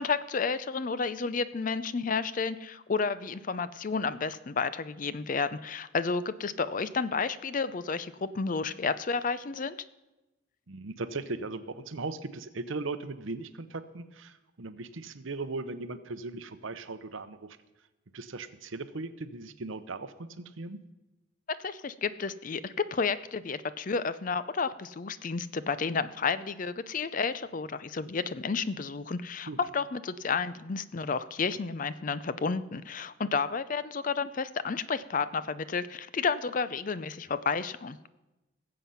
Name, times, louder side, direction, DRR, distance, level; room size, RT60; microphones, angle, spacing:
voice 1, 0.0-9.8 21.6-38.0, left 5 dB, 40° left, 15 dB, 0.4 m, -31 dB
voice 2, 10.7-17.6 18.1-20.8 29.5-29.6, right 3 dB, 70° right, 12 dB, 0.8 m, -38 dB
19.5 x 7.7 x 5.7 m, 1.1 s
head